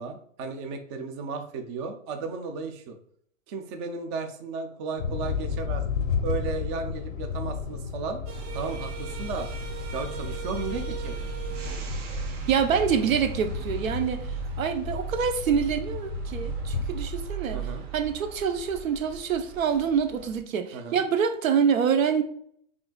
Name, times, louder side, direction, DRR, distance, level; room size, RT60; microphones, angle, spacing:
voice 1, 0.0-3.0 3.5-5.8 6.2-8.2 8.5-9.5 9.9-11.3 17.5-17.8 20.7-21.0, right 4 dB, 25° right, 0.3 m, -34 dB
sound 1, 5.0-17.3, left 6 dB, 80° left, 0.7 m, -34 dB
sound 2, 8.3-20.4, right 7 dB, 65° right, 1.1 m, -37 dB
voice 2, 12.5-14.2 14.6-17.6 17.9-22.2, right 7 dB, 90° right, 0.7 m, -26 dB
5.7 x 2.6 x 2.2 m
hypercardioid pair, 130°, 39 cm